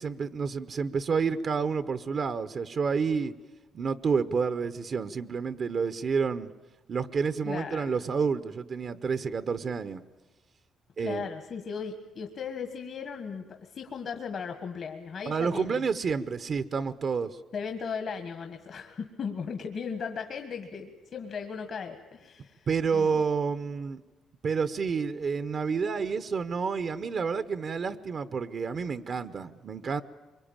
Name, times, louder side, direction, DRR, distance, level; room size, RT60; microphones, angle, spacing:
voice 1, 0.0-3.3 3.7-6.5 6.9-10.0 11.0-11.3 15.2-17.4 22.7-24.0 24.4-30.0, right 5 dB, 50° right, 12 dB, 0.9 m, -29 dB
voice 2, 7.4-7.9 11.0-15.8 17.5-22.7 22.9-23.2, left 6 dB, 55° left, 6 dB, 1.6 m, -37 dB
23.5 x 23.0 x 8.9 m, 1.1 s
cardioid pair, 90°, 0 cm